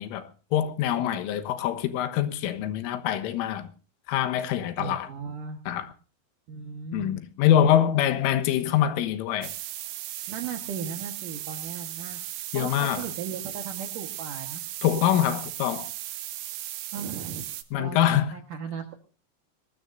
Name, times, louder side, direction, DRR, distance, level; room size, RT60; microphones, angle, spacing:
voice 1, 0.0-3.7 4.1-5.1 5.7-5.9 6.9-9.5 12.5-13.1 14.8-15.9 17.7-18.3, left 11 dB, 85° left, 3.8 m, -24 dB
voice 2, 4.8-5.6 6.5-7.2 10.3-12.2 12.5-14.6 16.9-17.5 17.8-18.9, right 6 dB, 65° right, 2.1 m, -37 dB
sound 1, 9.4-17.6, right 14 dB, 85° right, 3.9 m, -37 dB
22.5 x 19.5 x 2.6 m
omnidirectional pair, 5.6 m